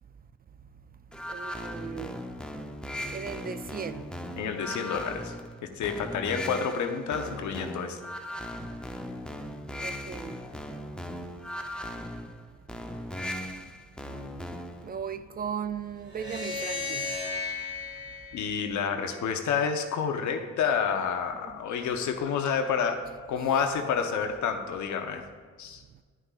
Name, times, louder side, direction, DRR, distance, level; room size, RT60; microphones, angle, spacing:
sound 1, 1.1-14.9, left 1 dB, 5° left, 0.7 m, -38 dB
voice 1, 1.3-2.2 3.1-4.1 8.5-9.4 9.8-10.6 12.9-13.3 14.8-17.2 21.4-21.6, right 7 dB, 30° right, 0.4 m, -38 dB
voice 2, 4.4-5.3 5.8-8.0 18.3-23.0 23.3-25.2 25.6-25.8, left 6 dB, 70° left, 1.0 m, -29 dB
sound 2, 16.1-19.4, left 4 dB, 50° right, 2.2 m, -35 dB
10.5 x 10.0 x 2.4 m
cardioid pair, 90°, 30 cm